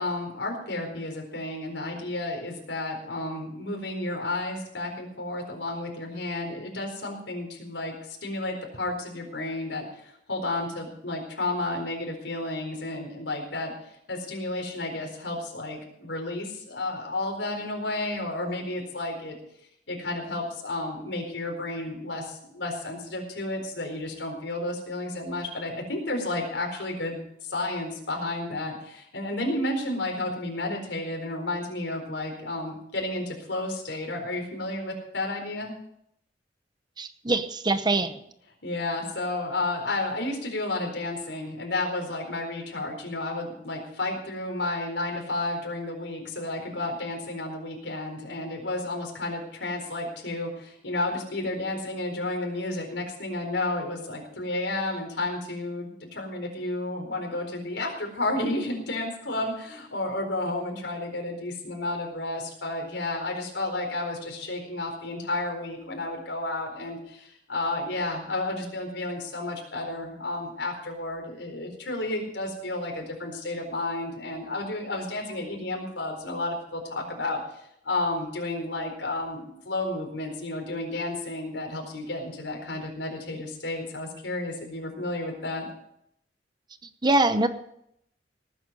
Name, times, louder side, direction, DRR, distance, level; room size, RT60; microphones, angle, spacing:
voice 1, 0.0-13.7 14.1-19.4 19.9-35.7 38.6-85.7, left 2 dB, 90° left, 1 dB, 4.4 m, -32 dB
voice 2, 37.0-38.2 87.0-87.5, right 2 dB, 25° right, 10 dB, 0.8 m, -23 dB
19.0 x 9.3 x 5.4 m, 0.74 s
head